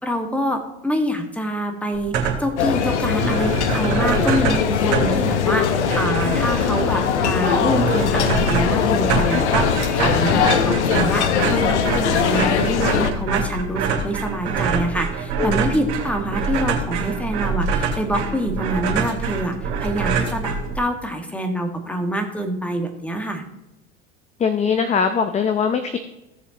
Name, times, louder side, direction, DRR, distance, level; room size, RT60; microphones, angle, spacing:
voice 1, 0.0-23.4, equal, 5° left, 4 dB, 1.6 m, -26 dB
sound 1, 1.9-2.6 2.9-3.0 3.2-21.0, right 5 dB, 65° right, 2.5 m, -25 dB
sound 2, 2.6-13.1, left 7 dB, 70° left, 0.9 m, -20 dB
voice 2, 24.4-26.0, left 6 dB, 20° left, 9 dB, 0.7 m, -21 dB
16.5 x 7.0 x 2.9 m, 0.93 s
figure-of-eight pair, 80°, 36 cm